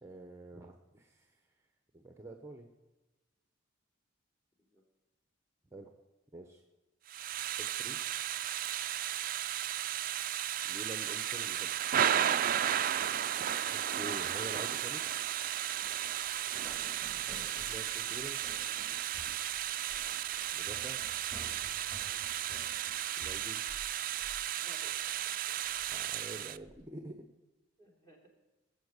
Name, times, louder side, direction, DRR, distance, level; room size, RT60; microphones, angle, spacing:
voice 1, 0.0-1.3 1.9-2.7 5.7-5.9 6.3-6.6 7.6-8.0 10.6-11.9 13.7-15.0 17.7-18.4 20.5-21.0 23.2-23.6 25.9-27.1, right 1 dB, 15° right, 4 dB, 0.9 m, -47 dB
Thunder / Rain, 7.1-26.6, right 10 dB, 45° right, 0.4 m, -34 dB
sound 1, 15.8-23.9 24.2-24.5 24.8-25.2 25.6-26.8, equal, 5° left, 3.4 m, -53 dB
voice 2, 22.4-22.7 24.6-25.3 25.7-26.3 26.8-26.9 27.8-28.3, equal, 20° left, 0 dB, 3.4 m, -61 dB
19.5 x 7.4 x 8.1 m, 1.1 s
head